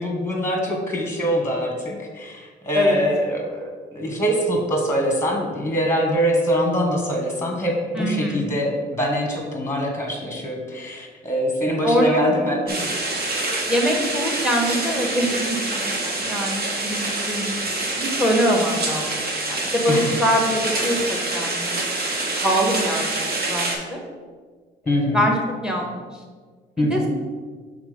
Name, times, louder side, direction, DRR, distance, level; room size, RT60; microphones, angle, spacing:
voice 1, 0.0-3.6 3.9-12.9 19.9-20.2 24.9-25.2 26.8-27.1, equal, 15° left, 1 dB, 1.5 m, -23 dB
voice 2, 7.9-8.5 11.8-12.2 13.7-17.0 17.3-17.5 17.8-19.1 19.5-24.0 24.8-26.0 26.8-27.1, equal, 5° right, 1 dB, 1.4 m, -24 dB
sound 1, 12.7-23.7, right 2 dB, 50° right, 1.4 m, -26 dB
6.0 x 3.9 x 5.1 m, 1.5 s
cardioid pair, 90°, 20 cm